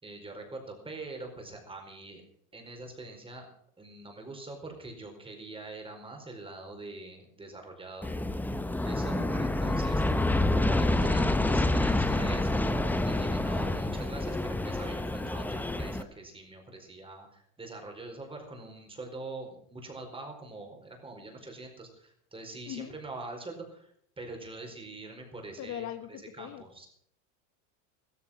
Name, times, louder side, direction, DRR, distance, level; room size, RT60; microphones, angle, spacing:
voice 1, 0.0-2.2 2.5-3.5 3.8-8.1 8.8-10.0 10.5-23.9 24.2-25.9 26.3-26.9, right 2 dB, 15° right, 3 dB, 4.7 m, -44 dB
Aircraft, 8.0-16.0, left 2 dB, 5° left, 0.8 m, -28 dB
voice 2, 9.1-9.8 22.6-23.0 25.6-26.6, left 11 dB, 40° left, 9 dB, 1.3 m, -41 dB
15.0 x 14.0 x 5.8 m, 0.67 s
supercardioid pair, 120°, 41 cm